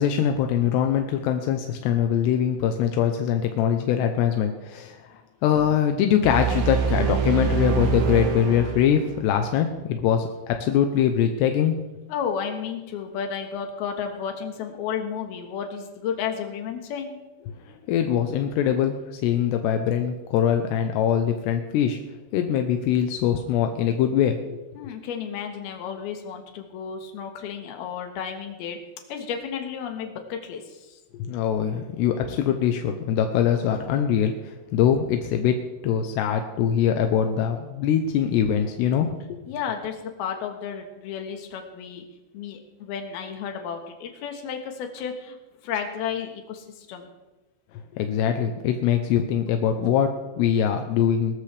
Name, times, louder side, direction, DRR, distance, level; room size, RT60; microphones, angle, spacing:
voice 1, 0.0-5.1 5.4-11.8 17.7-22.0 22.3-24.6 31.2-35.6 35.8-39.4 48.0-51.4, left 9 dB, 80° left, 5 dB, 2.5 m, -23 dB
sound 1, 6.2-9.3, right 7 dB, 65° right, 3.0 m, -25 dB
voice 2, 12.1-17.2 24.7-28.8 29.1-31.0 39.5-42.0 42.3-45.4 45.6-47.1, left 7 dB, 65° left, 4 dB, 2.9 m, -32 dB
21.0 x 13.5 x 3.4 m, 1.1 s
omnidirectional pair, 5.8 m